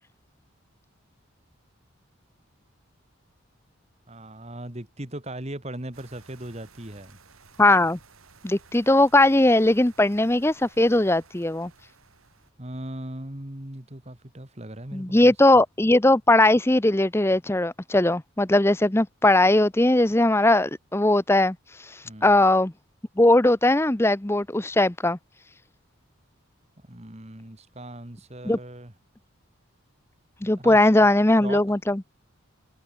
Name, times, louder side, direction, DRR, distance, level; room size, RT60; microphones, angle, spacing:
voice 1, 4.1-7.2 12.6-15.3 22.0-22.4 26.9-28.9 30.4-31.1 31.4-31.6, right 1 dB, 30° right, 2.1 m, -38 dB
sound 1, 5.9-12.5, right 4 dB, 85° right, 4.9 m, -55 dB
voice 2, 7.6-8.0 8.4-11.7 14.9-21.6 22.2-22.7 23.2-25.2 28.4-28.6 30.4-32.0, left 1 dB, 10° left, 0.6 m, -19 dB
head